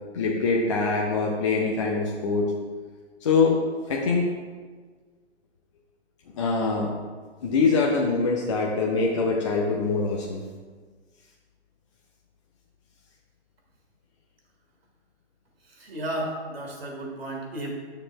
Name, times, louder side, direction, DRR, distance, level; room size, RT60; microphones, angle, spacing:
voice 1, 0.1-2.5 3.2-3.6 3.8-4.3 6.4-6.9 7.4-10.4, left 4 dB, 25° left, -1 dB, 0.5 m, -24 dB
voice 2, 15.7-17.7, right 1 dB, 60° right, 0 dB, 2.0 m, -33 dB
10.5 x 6.7 x 2.3 m, 1.5 s
figure-of-eight pair, 125°, 35 cm